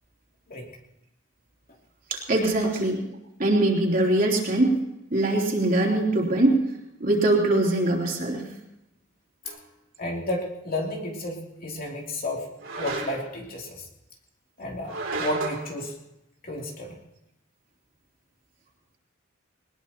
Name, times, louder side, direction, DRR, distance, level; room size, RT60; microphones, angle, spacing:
voice 1, 2.1-3.0 3.4-4.7 5.1-6.6 7.0-8.4, right 2 dB, 45° right, -1 dB, 3.3 m, -22 dB
sound 1, 9.4-9.6 12.6-13.4 14.8-15.7, right 3 dB, 70° right, 2.9 m, -33 dB
voice 2, 10.0-12.5 12.7-13.9 14.6-15.9 16.4-17.0, left 1 dB, 45° left, -1 dB, 2.9 m, -32 dB
21.0 x 20.0 x 2.9 m, 0.90 s
head